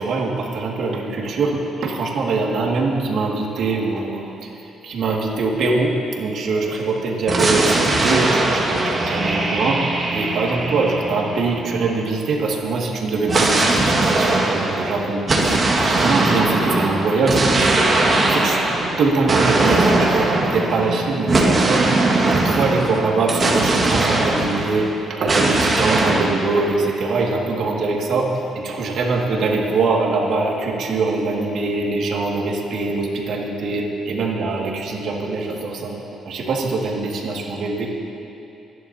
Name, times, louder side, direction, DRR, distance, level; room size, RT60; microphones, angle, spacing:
voice 1, 0.0-4.3 4.8-5.9 6.2-9.8 10.1-15.3 15.8-17.9 18.2-18.6 19.0-36.0 36.3-37.9, right 3 dB, 70° right, -1 dB, 2.1 m, -22 dB
sound 1, 7.3-12.0 13.3-24.9 25.3-26.4, right 2 dB, 35° right, 1.9 m, -20 dB
24.5 x 11.0 x 2.9 m, 2.8 s
cardioid pair, 90°, 0 cm